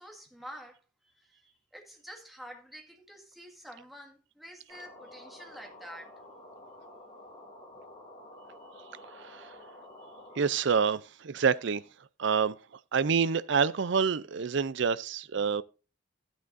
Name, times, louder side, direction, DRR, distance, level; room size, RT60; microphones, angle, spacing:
voice 1, 0.0-6.1, equal, ahead, 1.9 m, -48 dB
sound 1, 4.7-10.5, left 1 dB, 25° left, 2.9 m, -50 dB
voice 2, 10.4-11.8 12.2-12.6 12.9-15.6, right 6 dB, 60° right, 0.5 m, -27 dB
13.5 x 9.1 x 2.6 m
head